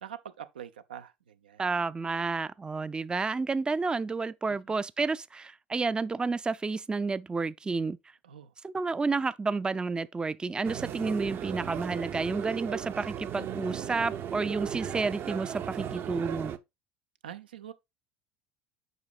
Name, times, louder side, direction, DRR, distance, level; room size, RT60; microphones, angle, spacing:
voice 1, 0.0-1.6 4.5-4.6 8.2-8.5 17.2-17.7, right 9 dB, 85° right, 0.6 m, -44 dB
voice 2, 1.6-8.0 8.6-16.5, right 4 dB, 15° right, 0.4 m, -30 dB
sound 1, 10.6-16.6, right 9 dB, 50° right, 0.7 m, -36 dB
8.1 x 5.3 x 2.4 m
hypercardioid pair, 70°, 5 cm